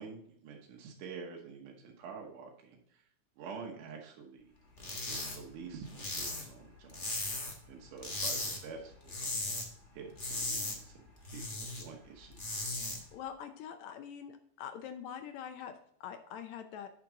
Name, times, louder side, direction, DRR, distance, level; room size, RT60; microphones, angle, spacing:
voice 1, 0.0-2.8 3.4-4.5 5.1-7.3 7.7-9.3 9.9-12.6, right 5 dB, 80° right, 0 dB, 2.6 m, -48 dB
sound 1, 4.8-5.4 5.6-7.7 8.0-8.6 8.9-9.7 10.0-11.8 12.2-13.0, left 2 dB, 50° left, 0.5 m, -37 dB
voice 2, 13.1-16.9, left 8 dB, 75° left, 8 dB, 1.8 m, -44 dB
8.3 x 6.2 x 3.7 m, 0.65 s
omnidirectional pair, 3.6 m